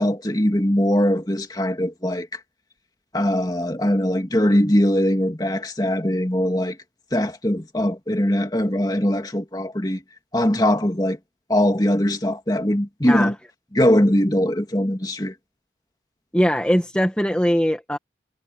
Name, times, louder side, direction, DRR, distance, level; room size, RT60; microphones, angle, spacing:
voice 1, 0.0-2.4 3.1-6.8 7.1-10.0 10.3-11.2 11.5-13.3 13.7-15.3, equal, 20° left, 2.1 m, -21 dB
voice 2, 13.0-13.3 16.3-18.0, equal, 5° left, 1.1 m, -21 dB
head